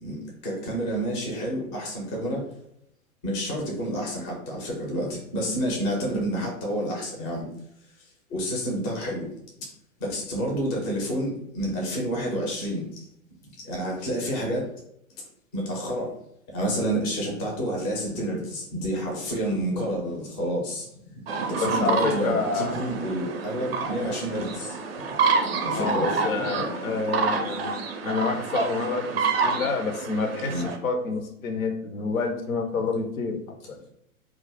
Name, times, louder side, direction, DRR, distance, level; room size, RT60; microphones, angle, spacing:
voice 1, 0.4-2.4 3.2-7.5 8.3-9.3 10.0-12.8 13.7-14.7 15.5-16.1 16.5-20.8 21.5-24.8 25.6-26.6 30.5-30.7, equal, 15° left, -1 dB, 0.4 m, -29 dB
sound 1, 21.3-30.8, right 4 dB, 45° right, 0.4 m, -28 dB
voice 2, 21.6-22.7 25.7-27.7 28.0-33.4, left 4 dB, 70° left, 4 dB, 0.6 m, -28 dB
2.4 x 2.0 x 3.3 m, 0.74 s
figure-of-eight pair, 105°, 44 cm